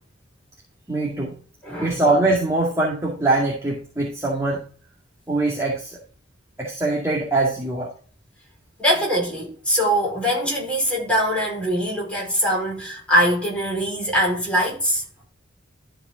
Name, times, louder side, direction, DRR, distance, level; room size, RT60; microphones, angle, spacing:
voice 1, 0.9-1.3 1.8-4.6 5.3-6.0 6.6-7.9, right 2 dB, 15° right, 2.2 m, -22 dB
voice 2, 1.6-2.0 8.8-15.0, equal, 5° left, 5.1 m, -22 dB
13.0 x 5.1 x 3.9 m
head